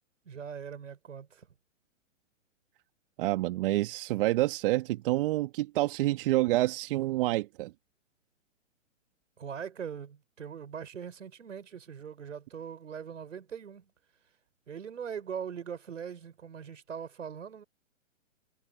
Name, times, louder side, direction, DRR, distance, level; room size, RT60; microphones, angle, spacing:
voice 1, 0.3-1.5 9.4-13.9 14.7-17.6, right 7 dB, 70° right, 5.7 m, -41 dB
voice 2, 3.2-7.7, right 17 dB, 45° right, 1.9 m, -28 dB
hypercardioid pair, 120°, 38 cm